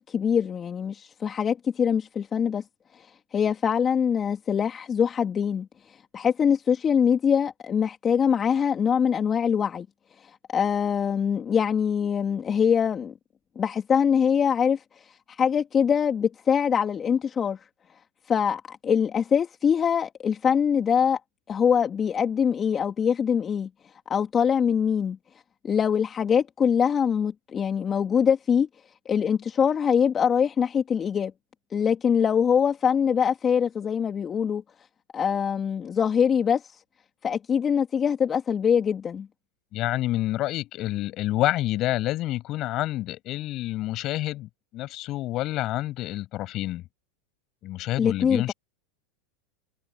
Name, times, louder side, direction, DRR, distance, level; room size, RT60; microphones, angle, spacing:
voice 1, 0.0-2.6 2.9-9.9 10.2-13.1 13.6-17.6 18.3-21.2 21.5-25.2 25.6-28.7 29.0-31.3 31.7-34.6 35.1-36.8 37.2-39.3 48.0-48.5, left 7 dB, 30° left, 2.8 m, -23 dB
voice 2, 39.7-46.8 47.6-48.5, left 16 dB, 45° left, 6.3 m, -28 dB
hypercardioid pair, 100°, 0 cm